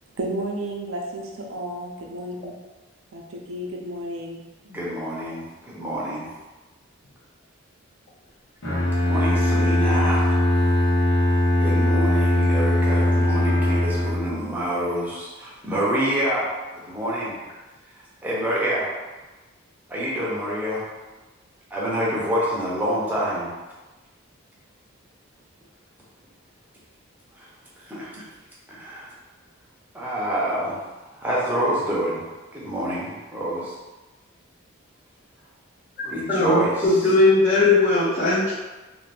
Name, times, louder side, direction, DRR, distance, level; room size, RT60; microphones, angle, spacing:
voice 1, 0.1-2.5 3.1-4.4, right 1 dB, 75° right, 0 dB, 0.5 m, -32 dB
voice 2, 4.6-6.3 9.0-10.4 11.5-17.4 18.2-18.9 19.9-20.9 21.7-23.5 27.4-27.5 27.8-28.2 28.7-29.1 29.9-30.8 31.2-32.2 32.5-33.7 36.0-37.2, equal, 10° right, -7 dB, 0.6 m, -27 dB
Bowed string instrument, 8.6-14.5, left 1 dB, 80° left, 1.0 m, -20 dB
voice 3, 36.3-38.5, left 2 dB, 35° left, -12 dB, 0.6 m, -18 dB
2.6 x 2.5 x 3.3 m, 1.2 s
head